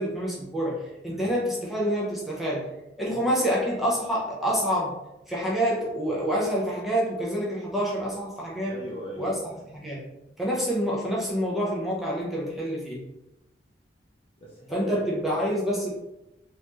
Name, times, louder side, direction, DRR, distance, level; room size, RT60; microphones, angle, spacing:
voice 1, 0.0-2.7 3.0-4.9 5.3-8.7 9.2-9.3 9.7-10.0 10.4-13.0 14.7-16.0, equal, ahead, -5 dB, 0.8 m, -27 dB
voice 2, 8.7-9.7 14.4-15.5, equal, 30° left, -4 dB, 0.6 m, -40 dB
4.0 x 2.8 x 3.1 m, 0.91 s
head